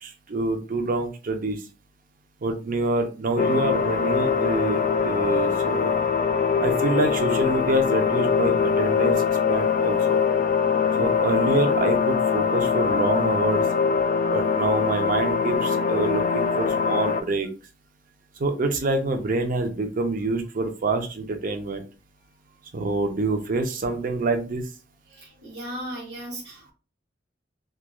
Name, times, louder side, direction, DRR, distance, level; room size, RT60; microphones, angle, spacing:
voice 1, 0.0-1.7 2.4-6.0 6.6-10.2 11.0-13.7 14.2-17.5 18.4-21.8 22.7-24.7, right 2 dB, 50° right, 6 dB, 0.5 m, -26 dB
sound 1, 3.4-17.2, left 6 dB, 45° left, 0.3 m, -22 dB
voice 2, 25.1-26.7, right 1 dB, 65° right, -1 dB, 1.4 m, -36 dB
3.0 x 2.2 x 2.3 m, 0.33 s
head